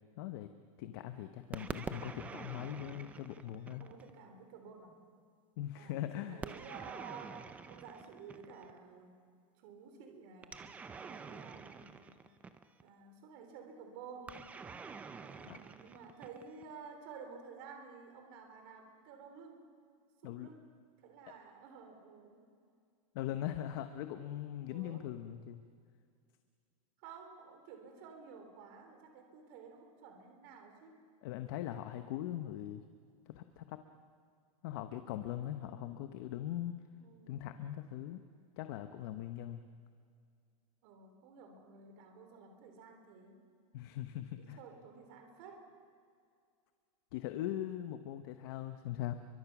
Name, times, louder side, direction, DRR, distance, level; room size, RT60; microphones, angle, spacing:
voice 1, 0.2-0.5 0.8-3.9 5.6-6.4 15.5-15.6 20.2-20.5 23.1-25.6 31.2-32.8 33.3-33.8 34.6-36.8 37.3-38.2 38.6-39.7 43.7-44.6 47.1-49.1, left 12 dB, 40° left, 9 dB, 1.0 m, -41 dB
sound 1, 1.5-4.2 6.4-8.8 10.4-12.9 14.3-16.7, right 5 dB, 10° right, 0.5 m, -47 dB
voice 2, 3.8-5.0 5.7-9.2 9.6-10.6 11.0-12.2 12.8-14.4 15.2-19.7 20.2-20.7 21.0-22.5 24.7-25.1 27.0-31.0 35.4-36.0 37.0-37.5 40.8-43.4 44.4-45.7, right 5 dB, 40° right, 5 dB, 3.5 m, -52 dB
30.0 x 23.5 x 6.1 m, 2.3 s
supercardioid pair, 175°, 18 cm